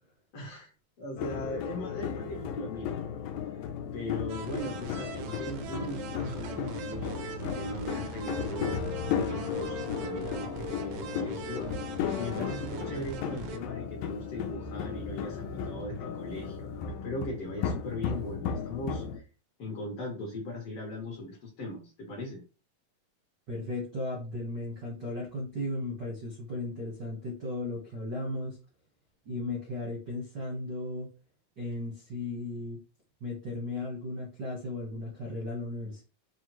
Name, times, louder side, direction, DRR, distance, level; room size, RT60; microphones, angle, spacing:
voice 1, 0.3-0.7 1.0-3.3 3.9-8.8 9.1-11.7 12.2-19.3 19.6-22.4, equal, 65° left, -1 dB, 1.5 m, -39 dB
sound 1, 1.2-19.2, left 8 dB, 85° left, 2.3 m, -35 dB
sound 2, 4.3-13.6, right 8 dB, 90° right, 2.3 m, -41 dB
voice 2, 23.5-28.6 29.2-31.1 31.6-32.8 33.2-36.0, left 2 dB, 75° right, -3 dB, 1.0 m, -36 dB
6.1 x 2.2 x 3.1 m, 0.34 s
omnidirectional pair, 4.0 m